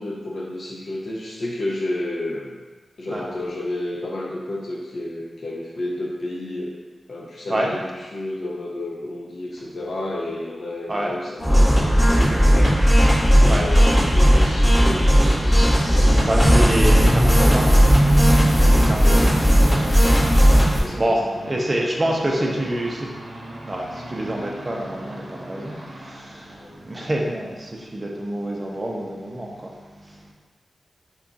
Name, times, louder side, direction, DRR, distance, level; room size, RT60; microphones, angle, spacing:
voice 1, 0.0-2.5 3.0-6.7 7.1-12.8 13.3-16.3 16.9-17.8 18.9-19.2 19.7-20.0 20.8-21.2 21.5-21.6 22.0-22.7 26.6-26.8, left 1 dB, 60° left, -3 dB, 0.5 m, -31 dB
sound 1, 11.4-20.8, equal, 35° left, 1.3 m, -16 dB
voice 2, 15.9-17.8 18.7-19.3 19.6-20.1 20.4-20.6 21.0-23.1 23.7-30.3, right 1 dB, 25° right, -2 dB, 0.5 m, -27 dB
sound 2, 16.0-20.6 21.0-26.2 26.5-26.8 27.1-27.2 27.6-27.7, right 1 dB, 55° right, 0.8 m, -28 dB
3.5 x 2.3 x 3.9 m, 1.3 s
wide cardioid pair, 110°, 0 cm